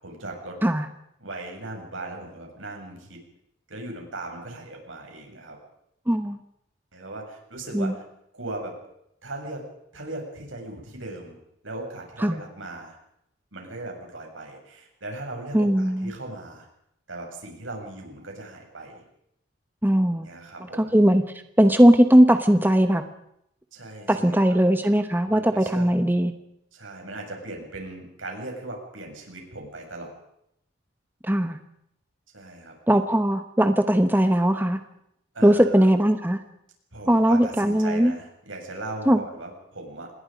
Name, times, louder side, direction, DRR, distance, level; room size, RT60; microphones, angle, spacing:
voice 1, 0.0-0.6 1.2-3.2 3.7-5.6 6.9-8.0 8.3-8.8 9.2-9.6 9.9-11.4 11.6-13.0 13.5-16.7 17.1-19.0 20.2-20.9 23.7-24.6 25.3-26.0 26.7-30.1 32.3-32.7 35.3-35.9 36.9-40.1, right 2 dB, 85° right, 1 dB, 7.3 m, -38 dB
voice 2, 6.1-6.4 7.7-7.9 12.2-12.4 15.5-16.1 19.8-20.3 20.8-21.2 21.6-23.0 24.1-26.3 31.2-31.6 32.9-34.8 35.4-36.4 37.1-38.1 39.1-39.2, equal, 10° right, 8 dB, 1.0 m, -19 dB
27.5 x 20.5 x 5.2 m, 0.78 s
head